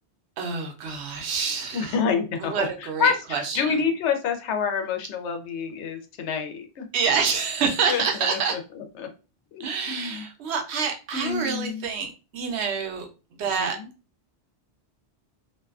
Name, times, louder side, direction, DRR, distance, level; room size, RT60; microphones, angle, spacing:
voice 1, 0.4-2.0 2.4-3.8 6.9-8.6 9.6-13.8, right 5 dB, 75° right, 4 dB, 0.9 m, -27 dB
voice 2, 1.7-6.9 7.9-9.1 9.5-10.2 11.1-11.9 13.4-13.9, left 6 dB, 80° left, 5 dB, 0.9 m, -28 dB
2.5 x 2.3 x 2.3 m, 0.32 s
omnidirectional pair, 1.2 m